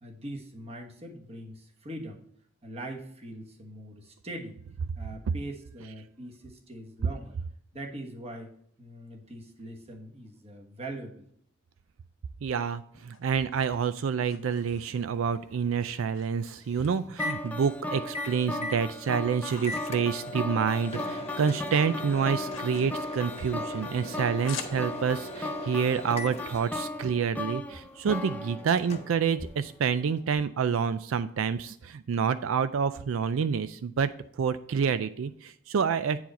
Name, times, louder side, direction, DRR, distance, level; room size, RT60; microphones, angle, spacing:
voice 1, 0.0-2.2 2.6-4.6 4.9-7.3 7.7-8.5 8.8-11.3, right 1 dB, 30° right, 2 dB, 1.3 m, -42 dB
sound 1, 12.4-15.3 15.8-16.9 17.2-18.2 18.6-21.2 21.5-25.3, left 7 dB, 75° left, 1.3 m, -47 dB
voice 2, 12.4-34.1 34.4-36.2, right 6 dB, 85° right, 12 dB, 0.4 m, -28 dB
Microwave oven, 14.5-30.2, left 2 dB, 30° left, 0.8 m, -41 dB
sound 2, 17.2-29.4, left 1 dB, 10° left, 0.4 m, -37 dB
9.1 x 4.8 x 4.1 m, 0.68 s
head